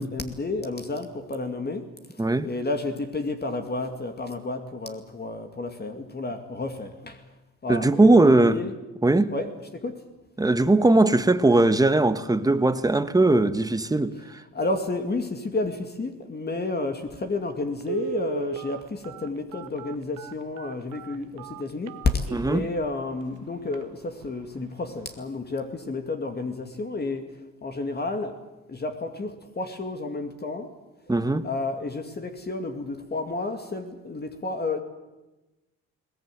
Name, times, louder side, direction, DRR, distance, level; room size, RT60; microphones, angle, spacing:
voice 1, 0.0-7.3 7.6-8.7 9.3-10.0 14.5-28.4 28.7-30.7 31.4-34.8, left 3 dB, 35° left, 2.4 m, -31 dB
voice 2, 7.7-8.6 9.0-9.3 10.4-14.4 22.3-22.7 31.1-31.5, right 2 dB, 10° right, 1.3 m, -20 dB
Telephone, 17.1-17.2 17.8-22.7 23.2-23.3 23.7-23.8 24.2-24.5 24.8-24.9, right 7 dB, 80° right, 1.3 m, -36 dB
21.0 x 18.5 x 9.3 m
cardioid pair, 90°, 30 cm